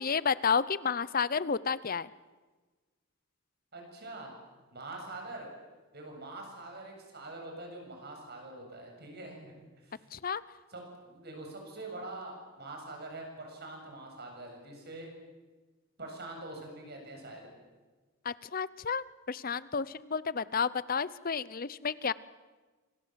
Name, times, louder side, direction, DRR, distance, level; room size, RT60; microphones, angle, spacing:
voice 1, 0.0-2.1 10.1-10.4 18.2-22.1, left 6 dB, 45° left, 18 dB, 0.7 m, -31 dB
voice 2, 3.7-4.3 4.7-5.5 5.9-10.1 10.7-15.1 16.0-17.5, right 2 dB, 50° right, 2 dB, 7.5 m, -44 dB
27.5 x 26.0 x 7.6 m, 1.3 s
head